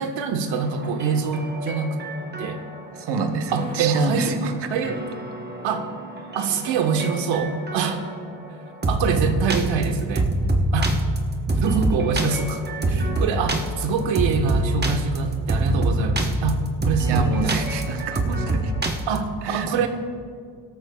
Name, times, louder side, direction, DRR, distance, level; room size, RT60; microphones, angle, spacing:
voice 1, 0.0-2.0 2.4-2.6 3.5-4.4 4.7-5.0 5.6-5.9 6.3-8.1 8.9-10.3 10.7-10.9 11.6-17.6 19.1-19.9, right 5 dB, 85° right, 5 dB, 1.4 m, -25 dB
sound 1, 0.5-19.2, right 2 dB, 20° right, 1.1 m, -26 dB
voice 2, 3.0-4.5 17.1-18.7 19.4-19.9, right 4 dB, 60° right, 5 dB, 1.2 m, -27 dB
23.5 x 13.0 x 2.4 m, 2.1 s
cardioid pair, 130°, 45 cm